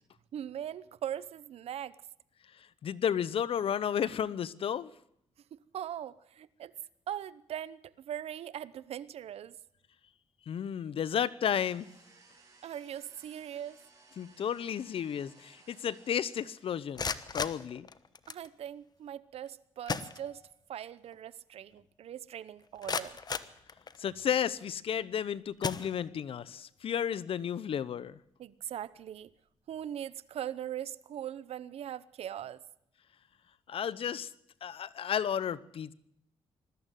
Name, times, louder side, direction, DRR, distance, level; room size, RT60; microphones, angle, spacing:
voice 1, 0.3-2.0 5.5-6.7 7.1-9.6 12.6-13.8 18.3-20.4 20.7-23.2 28.4-29.3 29.7-32.6, right 10 dB, 75° right, 0.9 m, -40 dB
voice 2, 2.5-4.9 10.5-11.9 14.2-17.9 24.0-28.2 33.7-34.3 34.6-35.9, left 8 dB, 60° left, 0.9 m, -33 dB
sound 1, 11.4-17.0, right 3 dB, 35° right, 7.3 m, -61 dB
sound 2, 16.8-18.5 19.5-19.6 19.9-20.8 21.1-21.2 21.8-21.9 22.4-24.3 24.9-25.1 25.6-26.4, left 5 dB, 40° left, 1.1 m, -38 dB
20.5 x 13.5 x 9.2 m
cardioid pair, 85°, 11 cm